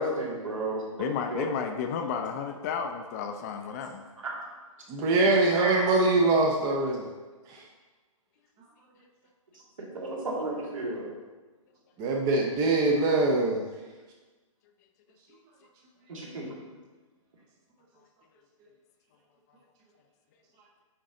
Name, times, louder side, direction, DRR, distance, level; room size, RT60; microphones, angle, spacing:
voice 1, 0.0-1.5 4.2-4.3 5.5-5.9 9.8-11.1 16.1-16.6, right 1 dB, 70° right, -3 dB, 2.3 m, -33 dB
voice 2, 1.0-4.1, left 6 dB, 30° left, 5 dB, 0.6 m, -32 dB
voice 3, 4.9-7.1 7.5-7.6 12.0-13.6, right 2 dB, 20° right, 0 dB, 0.7 m, -23 dB
9.0 x 4.1 x 3.8 m, 1.3 s
hypercardioid pair, 140°, 18 cm